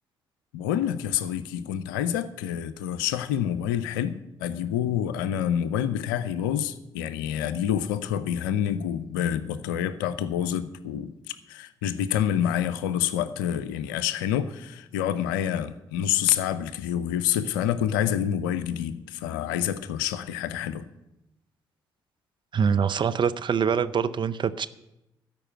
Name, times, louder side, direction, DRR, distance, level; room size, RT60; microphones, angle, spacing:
voice 1, 0.5-20.8, left 10 dB, 85° left, 15 dB, 0.5 m, -27 dB
voice 2, 22.5-24.7, right 7 dB, 50° right, 12 dB, 0.6 m, -24 dB
13.0 x 5.3 x 8.8 m, 0.91 s
hypercardioid pair, 40°, 11 cm